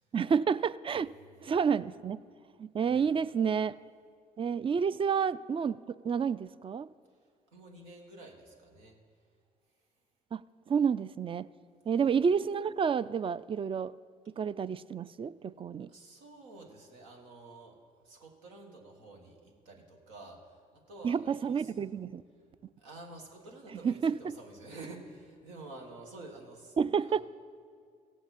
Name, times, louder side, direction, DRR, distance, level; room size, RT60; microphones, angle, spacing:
voice 1, 0.1-1.1 1.4-2.2 2.6-3.7 4.4-6.9 10.3-11.5 11.9-13.9 14.3-15.9 21.0-22.2 23.8-24.3 26.8-27.2, right 6 dB, 30° right, 17 dB, 0.3 m, -30 dB
voice 2, 7.5-9.0 11.9-12.1 15.9-17.8 18.0-21.7 22.8-26.8 27.0-27.2, right 2 dB, 85° right, 1 dB, 1.4 m, -49 dB
16.0 x 7.6 x 4.2 m, 2.1 s
hypercardioid pair, 50°, 19 cm